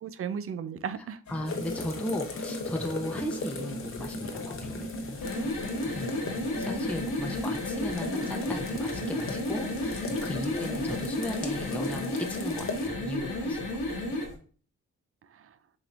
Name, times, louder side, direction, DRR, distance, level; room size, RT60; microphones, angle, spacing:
voice 1, 0.0-1.2 5.4-6.1 13.4-13.6 13.9-14.2 15.3-15.6, right 7 dB, 45° right, 13 dB, 0.5 m, -38 dB
sound 1, 1.3-12.1, left 1 dB, 60° left, 1.6 m, -39 dB
voice 2, 1.3-5.3 5.9-14.0, equal, 5° left, 2 dB, 0.7 m, -37 dB
sound 2, 1.4-12.9, left 4 dB, 40° left, 0.8 m, -41 dB
sound 3, 5.1-14.3, left 1 dB, 90° left, 0.9 m, -32 dB
5.1 x 3.0 x 2.6 m, 0.42 s
cardioid pair, 55°, 32 cm